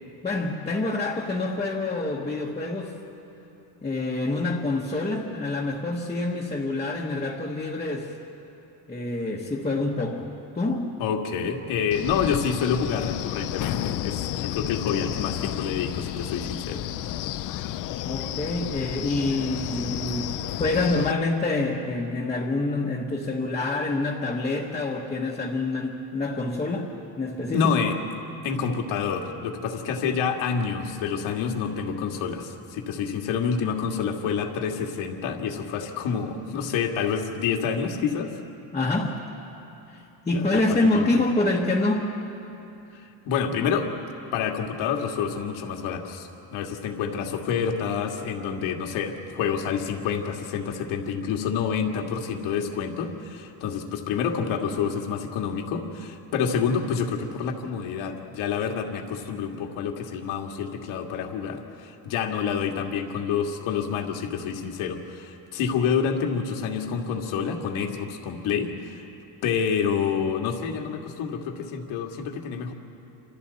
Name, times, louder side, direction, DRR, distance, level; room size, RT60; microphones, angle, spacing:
voice 1, 0.2-3.0 3.8-8.1 8.9-11.0 18.1-26.9 27.2-27.7 38.7-39.2 39.9-42.1, left 2 dB, 15° left, -3 dB, 1.2 m, -26 dB
voice 2, 11.0-16.8 27.5-28.0 28.4-38.3 40.3-41.0 43.3-43.9 44.3-69.1 69.4-72.7, left 6 dB, 85° left, 2 dB, 2.2 m, -28 dB
Wind, 11.9-21.1, left 13 dB, 45° left, 0.5 m, -31 dB
28.5 x 26.5 x 4.2 m, 3.0 s
cardioid pair, 180°, 47 cm